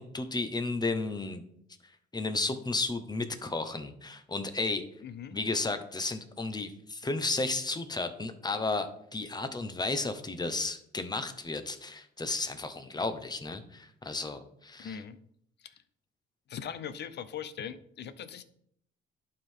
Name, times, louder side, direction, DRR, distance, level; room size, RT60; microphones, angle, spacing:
voice 1, 0.0-1.4 2.1-4.8 5.3-15.0, left 3 dB, 20° left, 9 dB, 1.0 m, -33 dB
voice 2, 5.0-5.4 14.8-15.2 15.6-15.7 16.5-18.4, left 8 dB, 60° left, 13 dB, 0.7 m, -40 dB
11.0 x 4.7 x 3.7 m, 0.70 s
cardioid pair, 90°, 20 cm